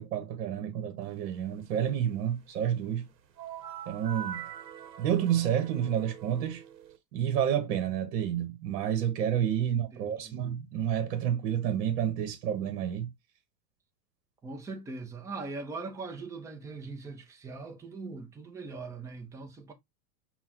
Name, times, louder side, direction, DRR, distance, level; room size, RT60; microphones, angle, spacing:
voice 1, 0.0-3.1 3.9-4.4 5.0-6.6 7.1-13.1, right 9 dB, 60° right, 1.1 m, -29 dB
sound 1, 3.4-7.0, right 9 dB, 90° right, 0.9 m, -43 dB
voice 2, 9.9-10.4 14.4-19.7, right 3 dB, 5° right, 0.5 m, -41 dB
5.7 x 2.3 x 2.8 m
hypercardioid pair, 115°, 49 cm